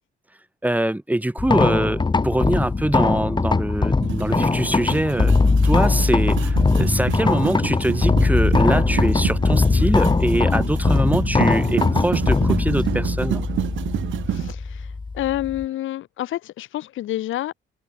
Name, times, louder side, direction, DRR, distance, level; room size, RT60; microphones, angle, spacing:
voice 1, 0.6-5.4 5.6-13.4, right 1 dB, 10° right, 2.4 m, -23 dB
sound 1, 1.4-15.6, left 3 dB, 25° left, 1.7 m, -20 dB
sound 2, 4.0-14.5, right 12 dB, 75° right, 2.4 m, -29 dB
voice 2, 14.3-17.5, left 14 dB, 80° left, 3.4 m, -28 dB
cardioid pair, 90°, 20 cm